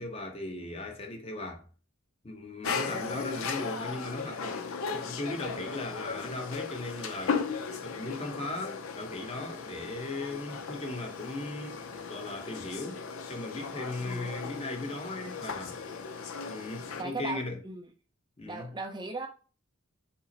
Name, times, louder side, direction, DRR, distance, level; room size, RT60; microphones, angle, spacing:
voice 1, 0.0-1.7 2.2-11.8 12.1-15.8 16.5-17.6 18.4-18.7, left 2 dB, 30° left, 0.8 m, -38 dB
sound 1, 2.6-17.0, left 5 dB, 80° left, 0.6 m, -37 dB
voice 2, 14.0-14.3 17.0-17.9 18.4-19.3, right 3 dB, 20° right, 0.5 m, -38 dB
5.4 x 2.1 x 4.0 m
head